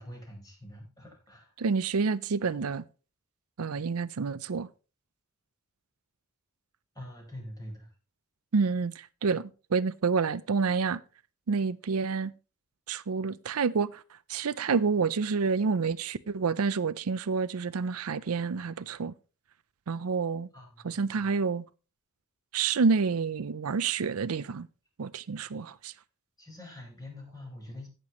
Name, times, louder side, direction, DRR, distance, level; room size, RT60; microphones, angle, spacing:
voice 1, 0.0-1.5 6.9-7.9 20.5-21.3 26.4-27.9, left 1 dB, 15° left, 4.7 m, -45 dB
voice 2, 1.6-2.8 3.6-4.7 8.5-11.0 11.5-12.3 12.9-14.0 14.3-19.1 19.9-20.5 20.8-21.6 22.5-24.7 25.0-25.9, right 5 dB, 85° right, 0.5 m, -28 dB
17.0 x 6.8 x 3.0 m
head